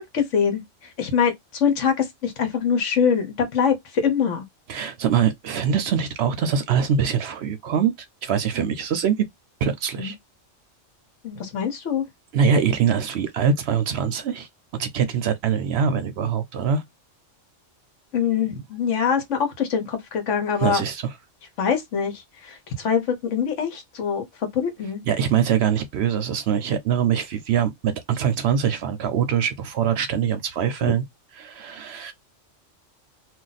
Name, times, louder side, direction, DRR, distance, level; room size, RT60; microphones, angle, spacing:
voice 1, 0.1-0.6 1.0-4.4 10.0-10.1 11.2-12.1 18.1-20.8 21.6-23.0 23.3-24.2 24.5-25.0 30.8-30.9, left 7 dB, 75° left, 1.2 m, -23 dB
voice 2, 4.7-7.9 8.2-9.2 9.6-10.2 12.3-14.5 14.8-16.8 20.6-21.1 25.1-31.0 31.4-32.1, right 7 dB, 65° right, 0.7 m, -23 dB
2.5 x 2.3 x 3.9 m
omnidirectional pair, 1.3 m